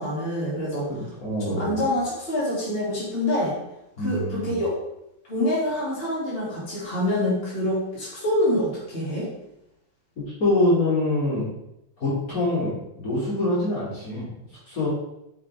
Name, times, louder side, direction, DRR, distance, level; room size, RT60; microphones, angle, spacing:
voice 1, 0.0-0.9 1.4-3.5 4.0-4.8 5.3-9.3, left 1 dB, 25° left, -7 dB, 3.2 m, -26 dB
voice 2, 0.9-1.8 4.0-4.5 10.4-11.5 12.0-14.3 14.7-14.9, left 2 dB, 45° left, -8 dB, 3.4 m, -25 dB
8.6 x 6.5 x 3.7 m, 0.83 s
omnidirectional pair, 2.2 m